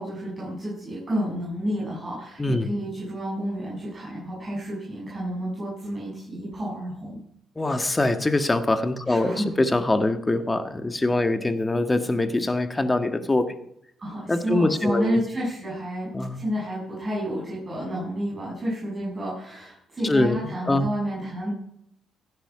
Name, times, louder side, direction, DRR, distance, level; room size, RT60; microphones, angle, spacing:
voice 1, 0.0-7.2 9.1-9.6 14.0-21.5, equal, 30° right, -6 dB, 7.0 m, -30 dB
voice 2, 2.4-2.7 7.6-13.5 14.3-15.2 16.1-16.4 20.0-20.9, left 2 dB, 20° left, 8 dB, 1.5 m, -23 dB
16.0 x 10.0 x 4.9 m, 0.73 s
cardioid pair, 90°, 0 cm